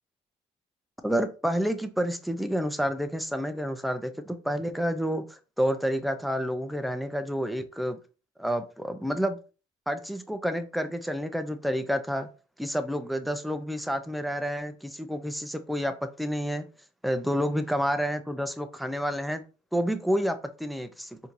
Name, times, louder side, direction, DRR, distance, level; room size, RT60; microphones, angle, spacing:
voice 1, 1.0-8.0 8.4-9.4 9.9-12.3 12.6-16.7 17.0-19.4 19.7-21.2, equal, ahead, 9 dB, 0.5 m, -29 dB
4.3 x 2.7 x 2.5 m, 0.34 s
cardioid pair, 90°, 20 cm